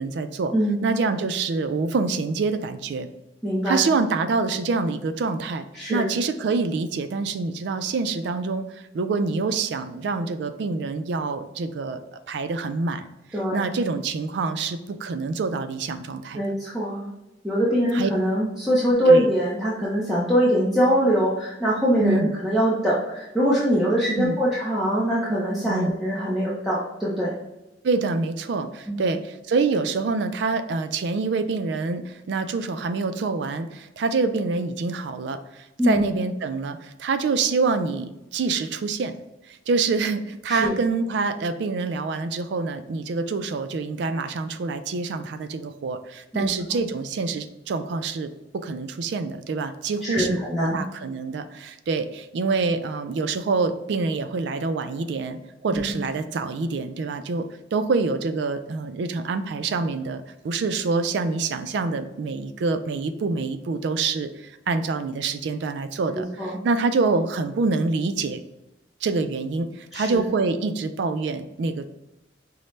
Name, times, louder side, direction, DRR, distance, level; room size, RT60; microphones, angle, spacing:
voice 1, 0.0-0.5 0.8-3.1 3.7-5.6 5.9-13.1 13.5-16.4 17.9-18.1 19.1-19.3 22.0-22.3 24.2-24.4 25.7-25.9 27.8-39.1 39.5-50.4 50.7-68.4 69.0-71.9, right 4 dB, 65° right, 10 dB, 0.3 m, -26 dB
voice 2, 0.5-0.9 3.4-3.9 5.7-6.1 13.3-13.7 16.3-17.1 17.4-27.3 28.9-29.0 35.8-36.0 40.5-40.7 46.3-46.8 50.0-50.8 55.7-56.0 66.2-66.6 69.9-70.2, equal, ahead, -9 dB, 0.7 m, -23 dB
5.3 x 2.1 x 3.1 m, 0.97 s
head